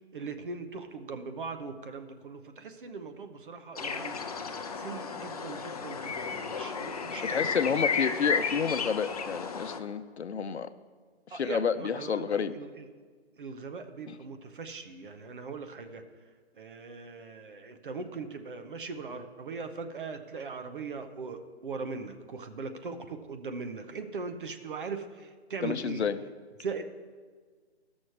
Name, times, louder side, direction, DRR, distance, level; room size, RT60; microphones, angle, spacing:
voice 1, 0.1-4.2 4.7-7.7 8.2-8.3 11.3-12.9 13.4-16.0 16.6-26.1 26.6-26.8, right 4 dB, 50° right, 7 dB, 0.9 m, -40 dB
sound 1, 3.8-9.8, left 5 dB, 35° left, 0.6 m, -33 dB
voice 2, 7.2-10.7 11.3-12.5 14.1-14.2 25.6-26.2, left 6 dB, 75° left, 11 dB, 0.7 m, -30 dB
13.0 x 6.3 x 4.7 m, 1.6 s
hypercardioid pair, 160°, 33 cm